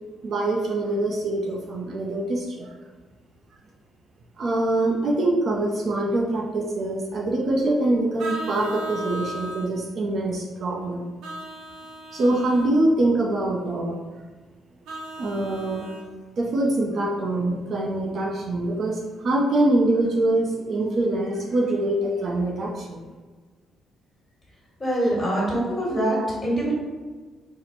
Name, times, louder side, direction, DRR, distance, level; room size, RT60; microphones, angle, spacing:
voice 1, 0.2-2.7 4.4-11.1 12.1-14.0 15.2-15.9 16.4-23.0, right 2 dB, 45° right, -1 dB, 0.5 m, -24 dB
Vehicle horn car horn honking, 8.2-9.7 11.2-12.7 14.8-16.0, right 1 dB, 85° right, 0.7 m, -36 dB
voice 2, 24.8-26.7, right 1 dB, 10° left, -6 dB, 1.5 m, -24 dB
4.1 x 2.0 x 4.3 m, 1.3 s
cardioid pair, 140°, 0 cm